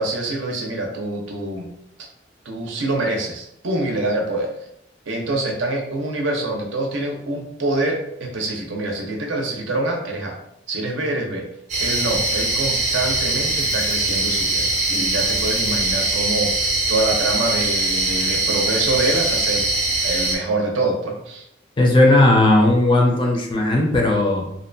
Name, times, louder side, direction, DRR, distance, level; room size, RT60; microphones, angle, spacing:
voice 1, 0.0-1.7 2.4-4.5 5.1-10.3 10.7-11.4 11.8-19.6 20.0-21.4, right 2 dB, 80° right, 1 dB, 0.6 m, -25 dB
sound 1, 11.7-20.4, right 2 dB, 40° right, 0.6 m, -22 dB
voice 2, 21.8-24.5, left 2 dB, 25° left, 0 dB, 0.4 m, -16 dB
2.6 x 2.2 x 2.6 m, 0.77 s
head